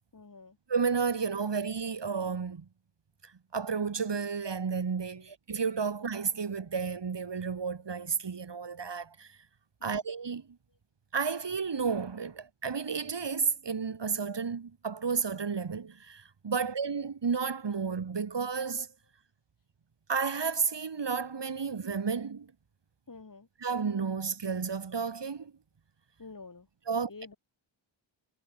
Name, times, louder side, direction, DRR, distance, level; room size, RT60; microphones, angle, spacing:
voice 1, 0.1-0.6 1.3-1.6 5.1-5.3 9.8-10.0 23.1-23.5 26.2-27.4, left 4 dB, 40° left, 6.0 m, -49 dB
voice 2, 0.7-2.7 3.5-9.4 9.8-10.5 11.1-18.9 20.1-22.5 23.6-25.5 26.9-27.1, right 5 dB, 55° right, 3.5 m, -32 dB
wide cardioid pair, 90°, 49 cm